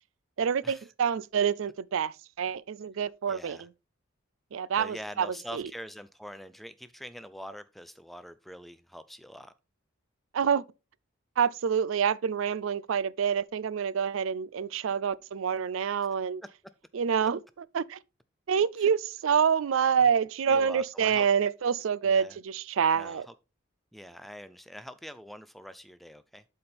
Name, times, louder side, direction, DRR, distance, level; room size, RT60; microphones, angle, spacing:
voice 1, 0.4-3.7 4.5-5.3 5.5-5.6 10.3-10.6 11.4-16.4 16.9-17.4 17.7-18.0 18.5-23.2, right 7 dB, 75° right, 0.4 m, -27 dB
voice 2, 3.3-3.7 4.8-9.5 18.8-18.9 20.5-21.3 22.0-22.4 23.0-23.3 23.9-26.4, equal, ahead, 0.3 m, -44 dB
11.5 x 4.3 x 3.4 m
head